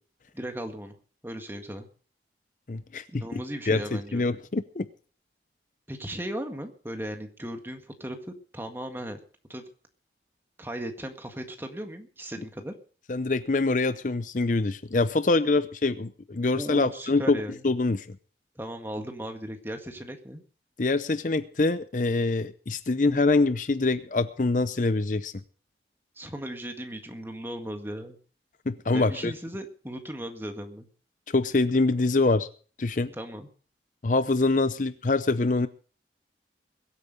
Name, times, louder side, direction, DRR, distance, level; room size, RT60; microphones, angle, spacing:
voice 1, 0.3-0.9 1.2-1.9 3.1-4.3 5.9-9.2 9.5-9.6 10.6-12.7 16.5-17.6 18.6-20.4 26.2-28.2 28.9-30.9 33.1-33.5, right 1 dB, 10° right, 5 dB, 1.8 m, -37 dB
voice 2, 2.7-4.9 13.1-18.2 20.8-25.4 28.7-29.3 31.3-32.5 32.8-33.1 34.0-35.7, left 3 dB, 45° left, 13 dB, 0.6 m, -25 dB
22.0 x 8.5 x 5.3 m, 0.41 s
head